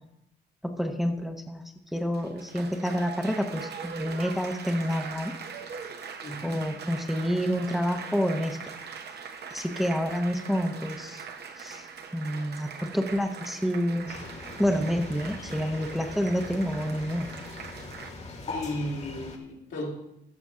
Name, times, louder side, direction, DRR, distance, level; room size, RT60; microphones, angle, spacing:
voice 1, 0.6-1.6 1.9-5.4 6.4-8.7 9.5-11.2 11.6-11.9 12.1-14.2 14.6-17.3, equal, ahead, 4 dB, 0.8 m, -28 dB
Applause, 1.9-18.1, right 6 dB, 55° right, 0.9 m, -41 dB
voice 2, 6.2-6.7 18.5-19.9, left 1 dB, 70° left, -2 dB, 2.5 m, -35 dB
sound 1, 14.1-19.4, left 3 dB, 35° left, 1.6 m, -41 dB
14.0 x 6.0 x 3.7 m, 0.81 s
cardioid pair, 90°, 20 cm